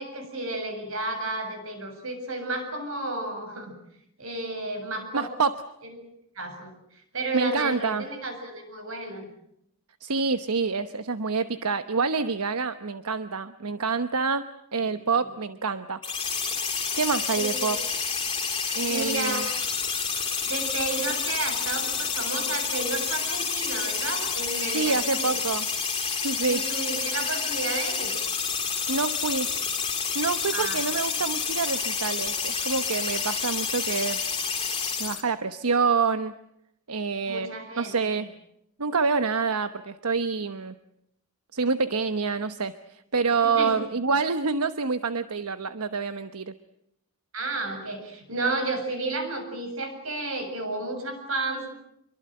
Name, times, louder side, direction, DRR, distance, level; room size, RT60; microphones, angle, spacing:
voice 1, 0.0-3.7 4.2-5.3 5.8-6.0 6.4-6.7 7.1-9.3 15.2-15.3 17.4-17.8 18.9-19.5 20.4-25.3 26.5-28.2 30.5-30.8 37.3-38.2 43.4-43.7 47.3-51.7, right 2 dB, 65° right, 6 dB, 7.4 m, -32 dB
voice 2, 5.1-5.6 7.3-8.0 10.0-16.0 17.0-17.8 18.7-19.5 24.7-25.6 26.1-26.6 28.9-29.5 30.1-34.2 35.0-36.3 36.9-37.5 37.8-38.3 38.8-40.7 41.5-46.5, right 4 dB, 90° right, 11 dB, 1.1 m, -27 dB
sound 1, 16.0-35.2, left 5 dB, 20° left, 3.6 m, -29 dB
26.5 x 23.5 x 7.8 m, 0.77 s
head